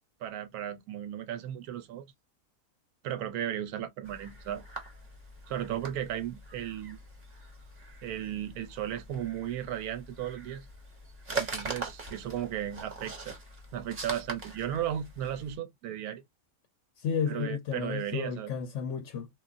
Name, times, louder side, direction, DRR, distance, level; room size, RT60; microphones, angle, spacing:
voice 1, 0.2-2.1 3.0-4.6 5.5-7.0 8.0-10.7 11.4-13.4 13.7-16.2 17.3-18.5, right 10 dB, 80° right, 1.1 m, -35 dB
sound 1, 4.0-15.6, right 3 dB, 35° right, 0.9 m, -42 dB
voice 2, 17.0-19.3, left 7 dB, 70° left, 0.8 m, -32 dB
3.2 x 2.4 x 2.4 m
omnidirectional pair, 1.6 m